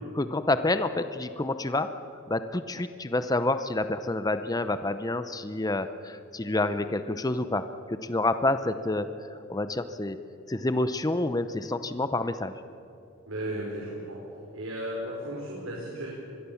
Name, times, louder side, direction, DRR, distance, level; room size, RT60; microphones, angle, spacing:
voice 1, 0.2-1.9 2.3-10.2 10.5-12.5, left 2 dB, 20° left, 11 dB, 0.7 m, -28 dB
voice 2, 13.3-14.2 14.5-16.1, right 1 dB, 85° right, -4 dB, 5.4 m, -35 dB
25.5 x 22.0 x 7.2 m, 2.7 s
head